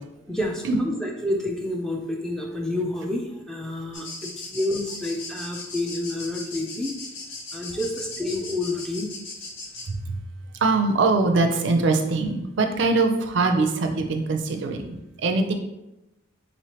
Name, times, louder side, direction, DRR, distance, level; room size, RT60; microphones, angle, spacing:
voice 1, 0.3-7.0 7.5-9.1, left 1 dB, 5° left, 0 dB, 0.3 m, -29 dB
sound 1, 3.9-9.9, left 3 dB, 70° left, 0.9 m, -37 dB
voice 2, 10.6-14.9 15.2-15.5, right 3 dB, 65° right, 5 dB, 0.4 m, -22 dB
4.1 x 3.1 x 2.9 m, 0.92 s
head